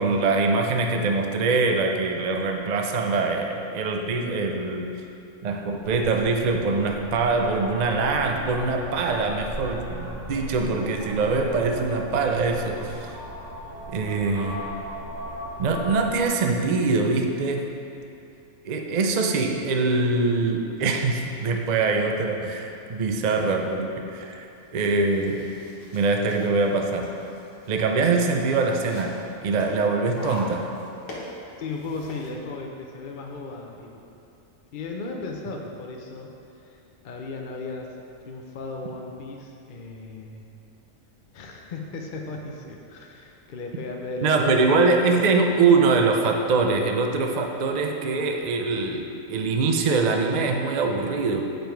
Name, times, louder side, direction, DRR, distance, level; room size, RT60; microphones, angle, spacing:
voice 1, 0.0-4.9 5.4-13.2 13.9-14.6 15.6-17.7 18.6-24.5 24.7-25.5 25.9-27.1 27.7-29.2 29.4-30.7 44.2-51.4, right 3 dB, 60° right, 3 dB, 0.4 m, -23 dB
sound 1, 5.8-16.3, equal, 80° right, 1.5 m, -38 dB
sound 2, 24.6-32.3, left 1 dB, 65° left, 1.7 m, -43 dB
voice 2, 31.6-34.0 34.7-36.3 36.6-37.9 38.3-40.5 41.3-45.0, left 3 dB, 50° left, 1 dB, 0.7 m, -36 dB
8.9 x 5.3 x 4.5 m, 2.6 s
omnidirectional pair, 1.4 m